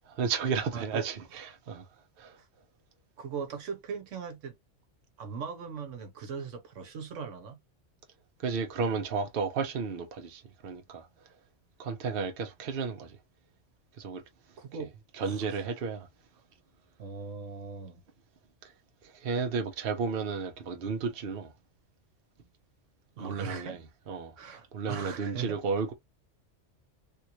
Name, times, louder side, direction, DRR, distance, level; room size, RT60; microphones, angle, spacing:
voice 1, 0.1-1.8 2.2-2.4 8.4-11.1 11.8-13.2 14.0-14.2 15.2-16.1 18.6-18.7 19.0-21.5 23.2-24.4 24.7-25.9, right 5 dB, 55° right, 0.9 m, -33 dB
voice 2, 0.7-1.0 3.2-4.5 5.2-7.6 14.6-14.9 15.3-15.5 17.0-18.0 23.2-23.8 24.4-25.6, right 5 dB, 75° right, 1.2 m, -39 dB
3.5 x 2.5 x 3.0 m
omnidirectional pair, 1.3 m